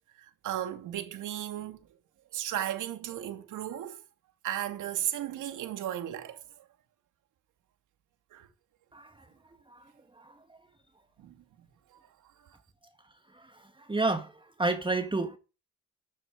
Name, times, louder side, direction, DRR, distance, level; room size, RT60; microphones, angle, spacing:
voice 1, 0.2-1.8 2.3-4.0 4.4-6.6 8.3-8.5 11.2-11.4 11.9-12.1 12.4-12.5, right 12 dB, 80° right, 2.6 m, -35 dB
voice 2, 8.9-9.3 9.7-10.6 13.3-15.4, right 2 dB, 15° right, 2.0 m, -32 dB
14.5 x 7.6 x 9.2 m
cardioid pair, 90°, 30 cm